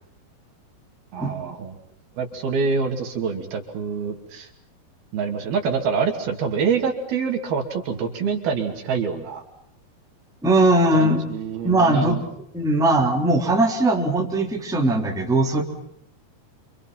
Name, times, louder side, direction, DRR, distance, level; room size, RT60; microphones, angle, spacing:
voice 1, 1.1-1.8 2.2-4.5 5.1-9.4 10.9-12.2, right 5 dB, 65° right, 4 dB, 4.5 m, -26 dB
voice 2, 10.4-11.2 11.6-12.2 12.5-15.6, right 2 dB, ahead, 1 dB, 2.8 m, -19 dB
28.0 x 27.5 x 5.8 m, 0.73 s
omnidirectional pair, 4.8 m